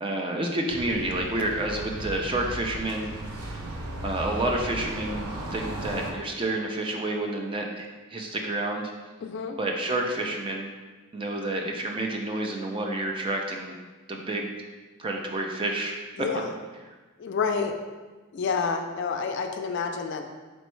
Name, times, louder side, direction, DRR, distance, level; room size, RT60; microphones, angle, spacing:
voice 1, 0.0-3.1 4.0-8.9 9.6-10.7 11.1-13.8 14.1-14.5 15.0-16.0, right 2 dB, 25° right, 1 dB, 0.3 m, -29 dB
sound 1, 0.7-6.1, right 1 dB, 80° right, 0.5 m, -36 dB
voice 2, 9.2-9.6 16.2-16.5 17.2-17.7 18.3-20.2, left 5 dB, 55° left, 5 dB, 0.3 m, -28 dB
4.3 x 3.1 x 3.1 m, 1.3 s
head